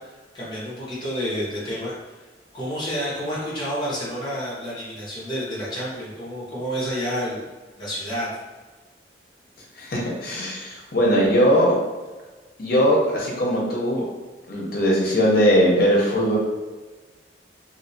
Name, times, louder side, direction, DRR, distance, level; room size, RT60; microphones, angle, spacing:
voice 1, 0.0-2.1 2.5-7.4 7.8-8.3, equal, 25° left, -8 dB, 1.1 m, -29 dB
voice 2, 9.8-11.8 12.6-14.1 14.5-16.4, equal, 55° left, -4 dB, 0.9 m, -20 dB
2.8 x 2.8 x 2.8 m, 1.3 s
head